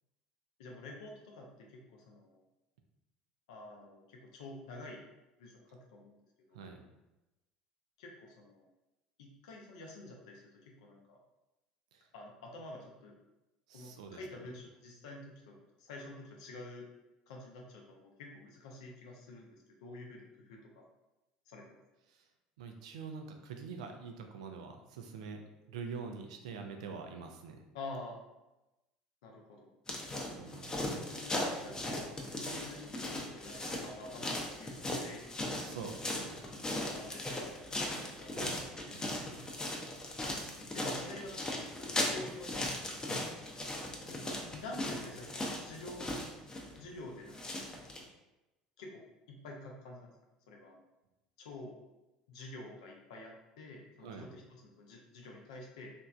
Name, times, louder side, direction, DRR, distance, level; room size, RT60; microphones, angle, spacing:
voice 1, 0.6-2.4 3.5-5.0 5.4-6.2 6.5-6.6 8.0-8.7 9.2-11.2 12.1-13.1 13.7-16.9 17.3-20.9 21.5-21.8 27.7-28.2 29.2-29.7 30.7-35.3 36.7-37.5 38.2-39.5 40.7-43.3 44.1-44.2 44.5-46.1 46.8-47.6 48.8-50.1 50.5-50.8 51.4-51.8 52.3-55.9, left 2 dB, 70° left, 0 dB, 0.5 m, -49 dB
voice 2, 13.7-14.2 22.1-22.3 22.6-25.4 25.7-27.7 30.4-30.9 35.6-36.4 38.3-38.6 38.9-39.1 54.0-54.3, right 5 dB, 70° right, 4 dB, 0.4 m, -45 dB
sound 1, 29.9-48.0, left 1 dB, 20° left, 0.6 m, -38 dB
3.0 x 2.5 x 2.3 m, 0.99 s
figure-of-eight pair, 70°, 4 cm